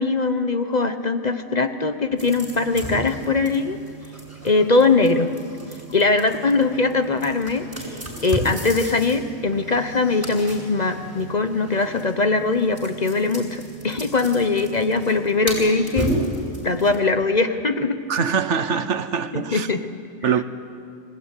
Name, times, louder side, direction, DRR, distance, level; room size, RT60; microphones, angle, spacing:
voice 1, 0.0-3.8 4.4-5.3 5.9-16.1 16.6-18.0 19.3-19.8 20.2-20.3, left 3 dB, 35° left, 8 dB, 1.0 m, -21 dB
sound 1, 2.2-17.0, right 1 dB, 25° right, 7.0 m, -33 dB
voice 2, 18.1-19.7 20.2-20.4, right 6 dB, 70° right, 12 dB, 1.2 m, -23 dB
26.0 x 16.5 x 9.9 m, 2.4 s
omnidirectional pair, 1.3 m